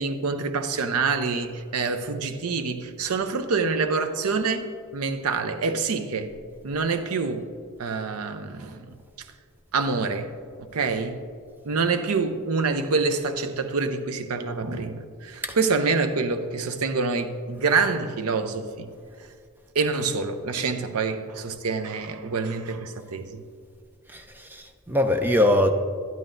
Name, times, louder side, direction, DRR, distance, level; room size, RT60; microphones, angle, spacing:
voice 1, 0.0-4.6 4.9-6.3 6.6-7.5 7.8-8.9 9.7-10.3 10.7-11.2 11.7-18.9 19.7-23.4, right 4 dB, 85° right, 8 dB, 0.6 m, -26 dB
voice 2, 24.1-25.7, left 1 dB, 10° right, 5 dB, 0.4 m, -22 dB
12.0 x 11.0 x 2.6 m, 2.2 s
head